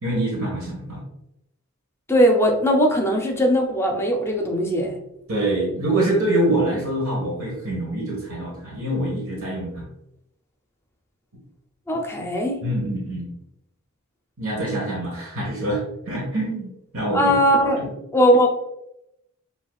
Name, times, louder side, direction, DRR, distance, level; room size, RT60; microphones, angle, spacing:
voice 1, 0.0-1.0 5.3-9.9 12.6-13.3 14.4-17.3 17.7-17.8, right 1 dB, 75° right, -2 dB, 1.3 m, -25 dB
voice 2, 2.1-5.0 11.9-12.6 17.1-17.8 18.1-18.5, equal, 10° left, 1 dB, 0.6 m, -19 dB
6.8 x 2.7 x 2.4 m, 0.84 s
head